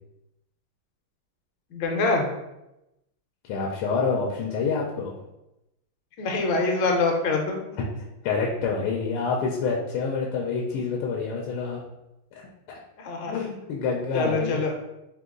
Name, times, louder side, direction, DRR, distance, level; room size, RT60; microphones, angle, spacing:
voice 1, 1.7-2.3 6.2-7.6 13.0-13.4 14.1-14.7, left 3 dB, 65° left, 1 dB, 1.3 m, -24 dB
voice 2, 3.4-5.1 7.7-7.8 8.2-11.8 13.3-14.6, left 5 dB, 90° left, -2 dB, 1.5 m, -27 dB
3.9 x 2.9 x 3.7 m, 0.91 s
omnidirectional pair, 2.3 m